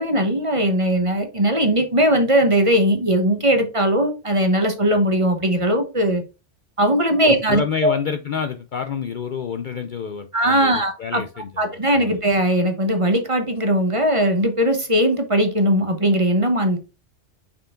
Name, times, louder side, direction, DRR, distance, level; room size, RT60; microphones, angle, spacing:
voice 1, 0.0-6.2 6.8-8.0 10.3-11.2 11.6-16.8, equal, 30° right, 6 dB, 1.0 m, -19 dB
voice 2, 7.2-11.6 12.0-12.2, left 7 dB, 55° left, 7 dB, 0.6 m, -28 dB
5.7 x 4.7 x 3.7 m, 0.30 s
omnidirectional pair, 1.2 m